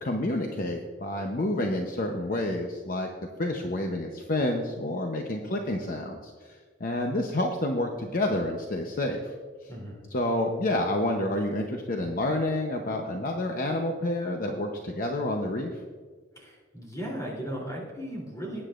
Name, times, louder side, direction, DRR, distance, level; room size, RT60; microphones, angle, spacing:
voice 1, 0.0-3.1 3.4-9.3 10.1-15.8, left 1 dB, 50° left, 2 dB, 0.8 m, -29 dB
voice 2, 9.7-10.0 16.3-18.6, equal, 20° left, -3 dB, 3.2 m, -36 dB
19.0 x 9.8 x 2.5 m, 1.5 s
head